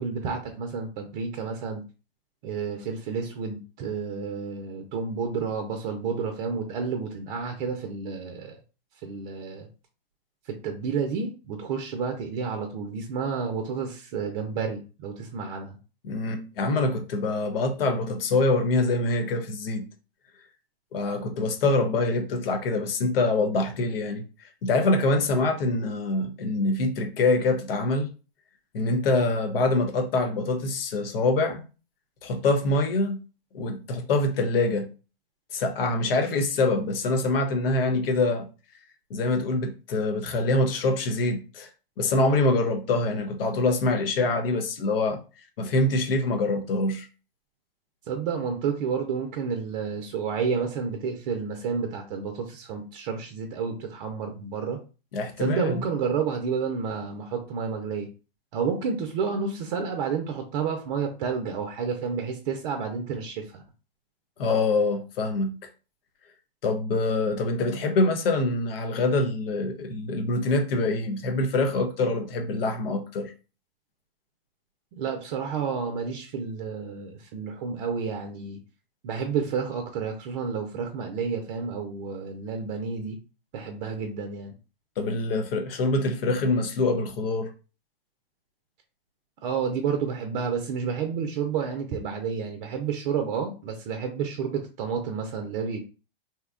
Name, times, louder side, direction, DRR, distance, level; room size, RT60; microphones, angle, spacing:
voice 1, 0.0-1.8 2.4-8.5 9.0-9.7 10.5-15.8 48.1-54.8 55.4-58.1 58.5-63.6 75.0-78.6 79.0-83.2 83.5-84.5 89.4-95.8, right 6 dB, 45° right, 0.5 m, -30 dB
voice 2, 16.0-19.9 20.9-24.2 24.6-28.1 28.7-31.6 32.2-33.2 33.5-34.9 35.5-38.5 39.1-41.7 42.0-45.2 45.6-47.1 55.1-55.7 64.4-65.6 66.6-73.3 85.0-87.5, left 2 dB, 70° left, 0.7 m, -25 dB
2.8 x 2.2 x 2.4 m
hypercardioid pair, 115°, 30 cm